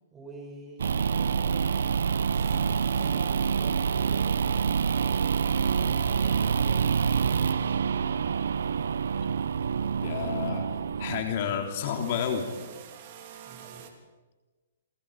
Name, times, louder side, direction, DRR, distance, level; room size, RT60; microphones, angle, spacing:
voice 1, 0.1-4.4 5.4-7.7 13.4-13.9, right 2 dB, 15° right, 0 dB, 6.7 m, -47 dB
sound 1, 0.8-11.2, right 6 dB, 80° right, 0.8 m, -26 dB
sound 2, 2.3-13.9, right 7 dB, 45° right, 3.5 m, -49 dB
sound 3, 2.5-12.7, left 4 dB, 85° left, 5.9 m, -49 dB
voice 2, 10.0-12.5, left 7 dB, 50° left, 3 dB, 3.5 m, -30 dB
28.5 x 25.5 x 5.1 m, 1.2 s
hypercardioid pair, 145°, 0 cm